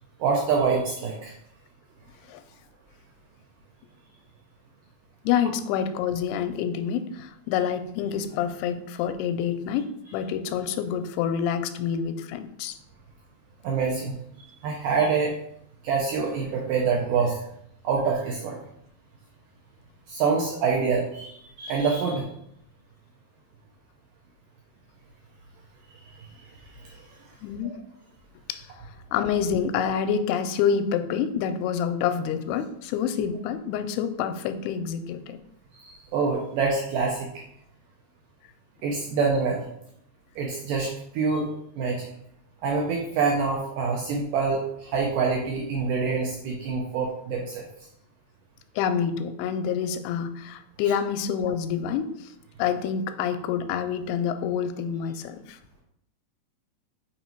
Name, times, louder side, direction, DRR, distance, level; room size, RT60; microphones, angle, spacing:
voice 1, 0.2-1.3 13.6-14.2 14.6-15.3 15.8-17.4 17.8-18.6 20.1-22.3 26.2-26.3 26.8-27.0 27.6-27.8 35.8-37.3 38.8-39.6 40.4-41.5 41.8-42.1 42.6-47.7, right 5 dB, 80° right, -1 dB, 1.9 m, -26 dB
voice 2, 5.2-12.8 27.4-27.8 28.5-28.7 29.1-35.4 48.8-52.3 52.6-55.6, left 8 dB, 85° left, 9 dB, 2.5 m, -27 dB
5.9 x 4.0 x 4.4 m, 0.73 s
omnidirectional pair, 4.6 m